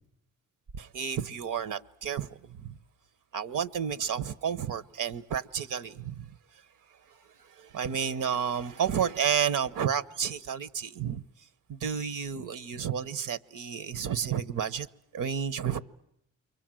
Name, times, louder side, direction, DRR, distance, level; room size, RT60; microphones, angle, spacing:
voice 1, 0.8-2.3 2.6-2.8 3.3-6.3 7.6-11.2 11.7-14.9 15.1-15.8, right 8 dB, 75° right, 1.0 m, -31 dB
29.0 x 23.0 x 7.6 m
cardioid pair, 70°, 32 cm